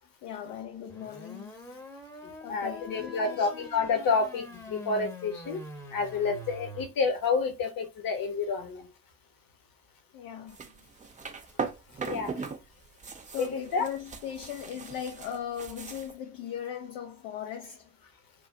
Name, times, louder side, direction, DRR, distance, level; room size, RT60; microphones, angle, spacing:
voice 1, 0.2-1.6 2.4-3.7 10.1-10.6 13.3-17.8, left 9 dB, 60° left, 0.7 m, -38 dB
sound 1, 0.9-6.9, left 1 dB, 5° left, 0.9 m, -45 dB
voice 2, 2.5-5.6 5.9-8.9 12.0-12.4 13.4-13.9, left 4 dB, 45° left, 1.2 m, -29 dB
sound 2, 10.5-12.6 12.9-16.1, right 5 dB, 15° right, 0.5 m, -39 dB
3.0 x 2.4 x 3.7 m
figure-of-eight pair, 50°, 48 cm